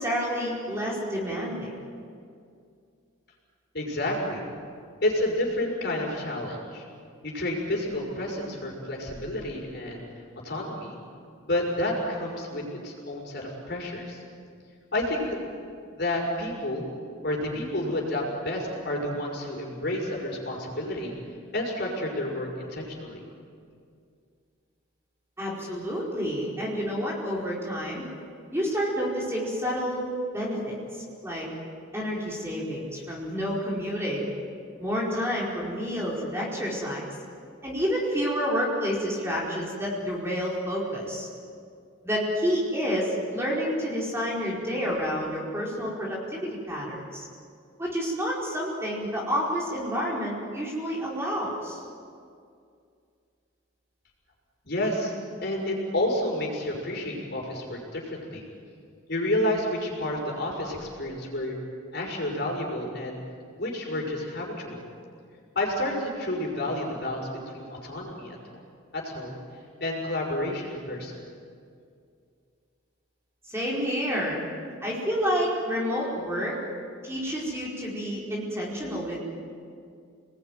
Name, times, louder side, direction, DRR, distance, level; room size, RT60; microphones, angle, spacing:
voice 1, 0.0-1.7 25.4-28.0 28.5-30.1 30.3-31.5 31.9-34.3 34.8-37.1 37.6-41.3 42.0-47.2 47.8-51.8 73.4-74.4 74.8-76.6 77.0-79.2, equal, 10° right, -5 dB, 4.9 m, -29 dB
voice 2, 3.7-4.5 5.0-6.8 7.2-10.0 10.4-11.0 11.4-14.2 14.9-15.4 15.9-16.9 17.2-21.1 21.5-23.2 54.6-55.1 55.4-58.4 59.1-61.5 61.9-63.2 63.6-64.8 65.5-68.4 68.9-69.4 69.8-71.2, left 1 dB, 50° left, -1 dB, 6.0 m, -30 dB
29.0 x 20.5 x 9.5 m, 2.3 s
head